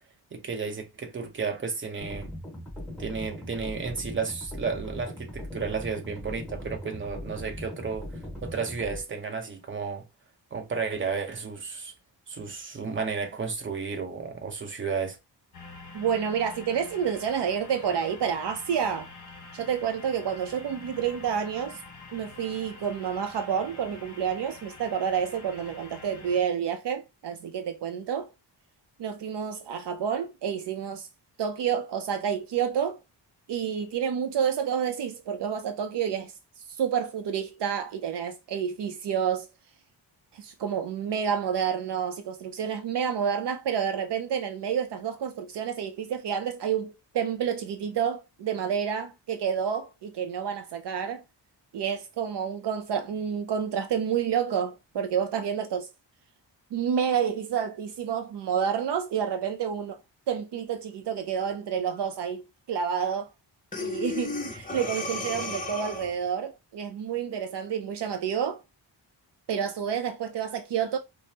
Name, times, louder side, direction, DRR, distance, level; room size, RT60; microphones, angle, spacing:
voice 1, 0.3-2.3 3.0-8.1 8.4-10.0 10.5-11.9 12.3-15.2, right 5 dB, 25° right, 0.8 m, -32 dB
sound 1, 2.0-9.0, left 1 dB, ahead, 1.8 m, -39 dB
sound 2, 15.5-26.4, left 3 dB, 40° left, 1.0 m, -46 dB
voice 2, 15.9-19.1 19.5-21.8 22.1-28.3 29.0-31.1 31.4-33.0 33.5-36.3 36.8-39.5 40.3-51.2 51.7-55.9 56.7-60.0 60.3-63.3 63.8-68.6 69.5-71.0, right 7 dB, 70° right, 0.6 m, -29 dB
Breathing, 63.7-66.3, left 3 dB, 20° left, 0.6 m, -34 dB
5.1 x 2.1 x 2.7 m
wide cardioid pair, 135°, 43 cm